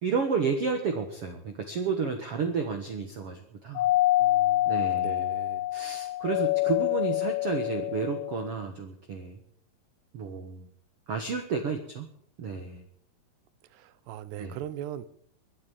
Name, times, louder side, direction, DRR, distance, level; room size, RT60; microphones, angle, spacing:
voice 1, 0.0-3.9 4.7-5.2 5.7-9.4 10.1-10.7 11.1-12.1 12.4-12.8 14.4-14.6, right 5 dB, 60° right, 5 dB, 1.5 m, -31 dB
Doorbell, 3.8-8.6, left 16 dB, 80° left, 3.0 m, -26 dB
voice 2, 4.2-5.7 12.5-12.6 13.7-15.1, right 11 dB, 85° right, 15 dB, 3.0 m, -40 dB
22.5 x 8.6 x 7.3 m, 0.63 s
omnidirectional pair, 4.7 m